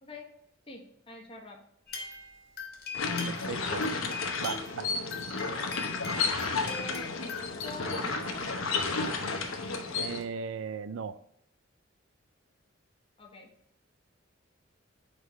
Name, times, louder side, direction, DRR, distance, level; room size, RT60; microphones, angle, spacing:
voice 1, 0.0-0.4 0.7-1.6 6.6-8.5 13.2-13.5, left 2 dB, 30° left, 0 dB, 1.3 m, -45 dB
sound 1, 1.9-3.6 3.8-8.9 9.7-9.8 10.2-10.3, left 5 dB, 50° left, 1.6 m, -42 dB
sound 2, 2.9-10.2, left 4 dB, 85° left, 0.9 m, -32 dB
voice 2, 3.3-3.8 4.4-4.9 9.9-11.2, right 6 dB, 75° right, 14 dB, 0.4 m, -37 dB
4.8 x 4.3 x 5.5 m, 0.76 s
head